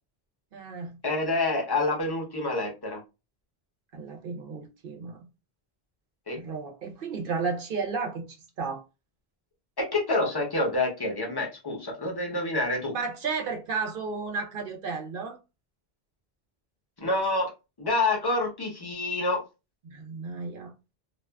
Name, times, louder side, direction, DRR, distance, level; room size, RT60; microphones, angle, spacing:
voice 1, 0.5-1.0 3.9-5.3 6.4-8.3 8.6-8.8 12.9-15.4 19.8-20.7, right 4 dB, 60° right, 0.8 m, -33 dB
voice 2, 1.0-3.0 6.3-6.4 9.8-12.9 17.0-17.5 17.8-19.4, left 2 dB, 25° left, 0.8 m, -27 dB
2.5 x 2.3 x 2.2 m
omnidirectional pair, 1.0 m